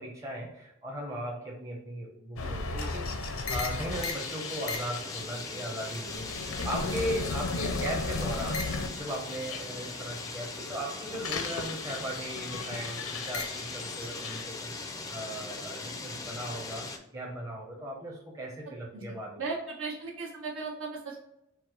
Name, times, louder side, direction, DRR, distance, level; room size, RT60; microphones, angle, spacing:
voice 1, 0.0-14.7 15.1-19.5, right 1 dB, 15° right, -1 dB, 0.7 m, -38 dB
sound 1, 2.4-10.3 10.7-14.4, left 3 dB, 85° left, 0.6 m, -35 dB
sound 2, 3.9-17.0, left 3 dB, 15° left, 0.4 m, -40 dB
voice 2, 6.6-6.9 18.9-19.0 19.4-21.2, right 4 dB, 75° right, -3 dB, 1.4 m, -37 dB
4.6 x 2.2 x 4.6 m, 0.84 s
head